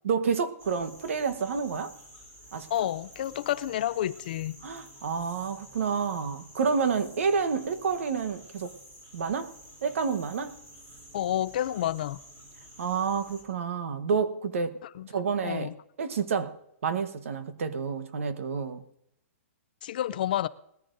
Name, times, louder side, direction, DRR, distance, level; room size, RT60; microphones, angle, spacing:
voice 1, 0.0-1.9 2.5-2.7 4.6-8.8 9.1-9.5 9.8-10.5 12.8-14.8 15.1-15.7 16.0-16.6 16.8-18.8, right 5 dB, 65° right, 1.2 m, -29 dB
sound 1, 0.6-13.4, equal, 20° right, 3.3 m, -51 dB
voice 2, 2.7-4.5 11.1-12.2 14.9-15.1 15.4-15.7 19.8-20.5, left 12 dB, 35° left, 0.4 m, -29 dB
20.0 x 14.0 x 2.6 m
hypercardioid pair, 175°, 8 cm